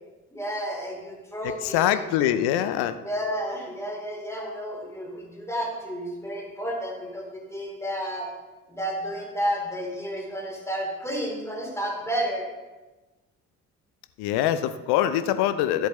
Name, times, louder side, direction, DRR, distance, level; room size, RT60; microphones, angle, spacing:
voice 1, 0.3-2.0 3.0-8.3 8.7-12.5, equal, 5° left, -2 dB, 3.7 m, -31 dB
voice 2, 1.6-3.0 14.2-15.9, left 11 dB, 55° left, 11 dB, 0.7 m, -23 dB
13.0 x 7.9 x 3.2 m, 1.1 s
figure-of-eight pair, 45°, 46 cm